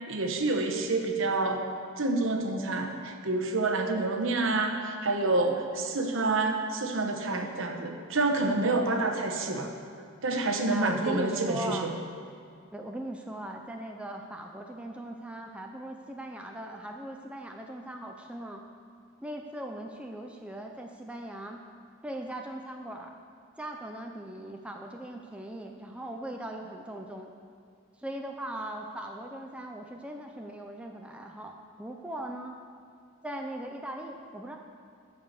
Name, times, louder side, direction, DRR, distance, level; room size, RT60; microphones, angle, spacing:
voice 1, 0.1-1.6 2.0-9.7 10.2-12.0, right 2 dB, 65° right, 4 dB, 1.0 m, -28 dB
voice 2, 10.7-11.9 12.7-18.6 19.2-21.6 22.0-23.1 23.6-27.3 28.0-32.6 33.2-34.6, right 1 dB, 5° right, 2 dB, 0.5 m, -39 dB
14.0 x 4.8 x 6.6 m, 2.3 s
head